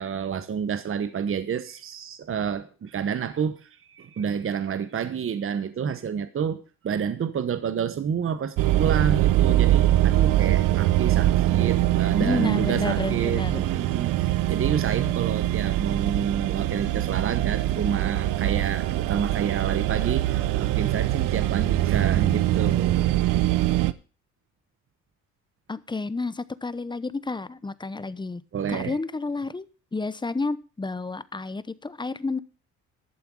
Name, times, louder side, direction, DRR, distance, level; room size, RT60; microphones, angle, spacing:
voice 1, 0.0-23.4 28.5-29.0, right 7 dB, 40° right, 12 dB, 1.1 m, -29 dB
sound 1, 8.6-23.9, right 14 dB, 80° right, 0.7 m, -23 dB
voice 2, 12.2-13.6 25.7-28.4 28.7-29.6 29.9-32.4, left 3 dB, 15° left, 17 dB, 0.8 m, -30 dB
12.0 x 7.0 x 6.2 m, 0.37 s
supercardioid pair, 80°, 32 cm